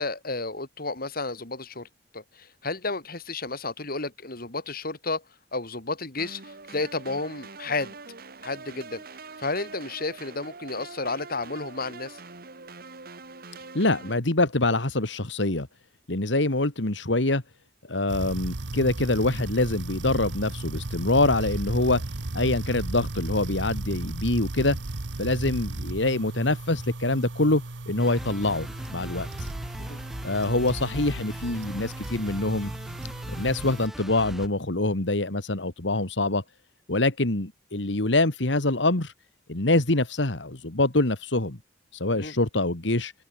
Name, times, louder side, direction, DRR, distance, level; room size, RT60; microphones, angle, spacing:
voice 1, 0.0-1.9 2.1-5.2 5.5-7.9 8.4-9.0 9.4-12.2 29.9-30.0 42.2-42.3, left 3 dB, 55° left, 5.0 m, -32 dB
sound 1, 6.2-14.2, right 4 dB, 55° right, 2.6 m, -44 dB
voice 2, 13.7-15.7 16.1-17.4 17.9-22.0 22.3-24.8 25.2-28.7 28.9-29.5 30.2-32.7 33.3-36.4 36.9-39.1 39.5-41.6 41.9-43.1, left 2 dB, 75° left, 2.4 m, -25 dB
sound 2, 18.1-33.9, right 2 dB, 75° right, 1.3 m, -35 dB
sound 3, 28.0-34.5, equal, ahead, 3.8 m, -39 dB
open air
head